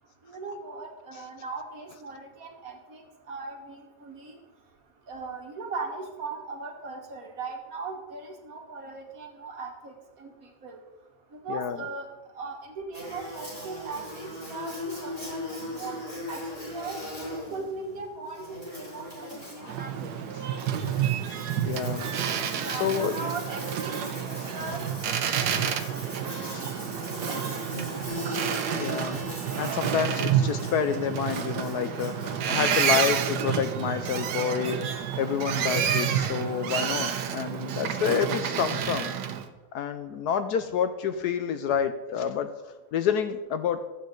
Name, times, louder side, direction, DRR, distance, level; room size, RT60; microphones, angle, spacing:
voice 1, 0.3-3.0 3.3-4.4 5.1-10.3 10.6-10.8 11.3-12.1 12.3-16.0 16.3-16.4 16.7-17.0 17.5-20.1 21.0-21.1 22.5-24.8 25.1-25.5 25.9-26.9 27.3-27.6 27.9-28.0 29.1-29.2 35.6-35.7, right 4 dB, 55° right, 2 dB, 1.7 m, -39 dB
Buzz, 12.9-32.7, left 1 dB, 15° left, 4.2 m, -40 dB
Boat Water vehicle, 19.6-39.5, right 9 dB, 80° right, 1.4 m, -29 dB
voice 2, 21.6-23.2 24.4-24.5 26.3-26.6 26.9-27.0 28.1-29.2 29.6-39.1 39.7-43.8, left 7 dB, 70° left, 10 dB, 1.1 m, -29 dB
sound 1, 28.1-32.3, right 1 dB, 55° left, 4.6 m, -51 dB
13.0 x 8.3 x 3.9 m, 1.1 s
omnidirectional pair, 1.9 m